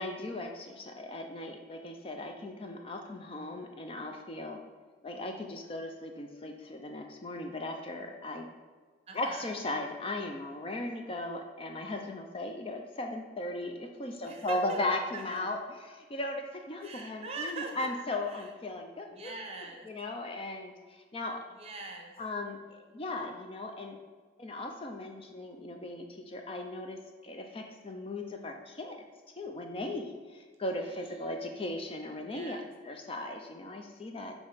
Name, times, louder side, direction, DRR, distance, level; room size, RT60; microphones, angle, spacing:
voice 1, 0.0-4.6 5.0-8.5 9.1-15.6 15.9-19.3 19.9-21.4 22.2-24.0 24.4-29.0 29.4-32.6 32.8-34.3, left 2 dB, 30° left, 3 dB, 0.5 m, -37 dB
voice 2, 9.1-9.5 14.2-14.8 15.1-15.4 16.8-17.9 18.2-18.5 19.1-19.9 21.5-22.1 30.8-31.4 32.2-32.7, right 3 dB, 35° right, 2 dB, 0.8 m, -43 dB
5.4 x 4.7 x 3.9 m, 1.4 s
head